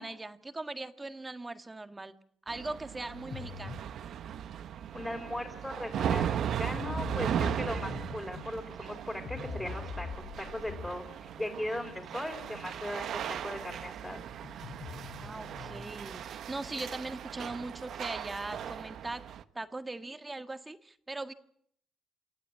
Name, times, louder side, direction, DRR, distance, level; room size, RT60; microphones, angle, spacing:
voice 1, 0.0-2.2 2.5-3.8 15.2-19.2 19.5-21.3, right 2 dB, 20° right, 8 dB, 1.6 m, -40 dB
sound 1, 2.5-19.4, right 9 dB, 70° right, 1.0 m, -37 dB
sound 2, 3.1-15.9, left 5 dB, 70° left, 2.4 m, -46 dB
voice 2, 4.9-14.2, left 1 dB, 10° left, 3 dB, 3.8 m, -38 dB
28.0 x 11.5 x 9.8 m, 0.67 s
cardioid pair, 90°, 0 cm